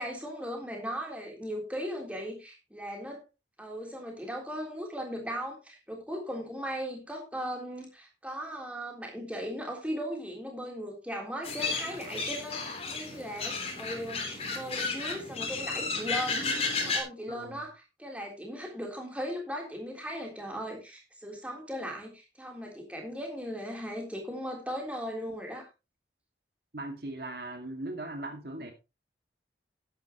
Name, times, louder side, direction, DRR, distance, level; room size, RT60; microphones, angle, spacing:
voice 1, 0.0-3.2 3.6-16.4 16.8-25.7, equal, 5° right, 1 dB, 3.5 m, -38 dB
sound 1, 11.4-17.0, left 4 dB, 35° left, 3.3 m, -33 dB
voice 2, 17.3-17.6 26.7-28.7, right 2 dB, 60° right, 5 dB, 2.0 m, -39 dB
12.0 x 11.0 x 3.0 m, 0.27 s
head